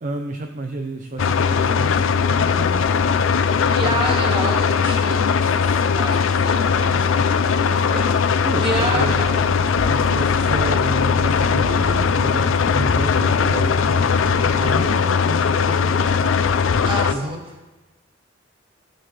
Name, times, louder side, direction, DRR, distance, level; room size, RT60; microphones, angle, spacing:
voice 1, 0.0-3.0 3.3-4.2 6.7-7.3 7.7-8.1 8.4-9.3 9.9-16.3 17.1-17.4, right 2 dB, 40° right, 5 dB, 0.6 m, -32 dB
sound 1, 1.2-17.1, left 6 dB, 75° left, 0.5 m, -19 dB
sound 2, 1.5-3.6 6.9-9.2 12.7-12.9, left 5 dB, 10° right, 3.3 m, -38 dB
voice 2, 3.5-6.9 7.5-7.8 8.6-9.3 16.9-17.4, right 1 dB, 25° right, -1 dB, 1.8 m, -28 dB
sound 3, 8.7-14.9, equal, 35° left, 3.1 m, -32 dB
15.0 x 6.8 x 3.3 m, 1.2 s
head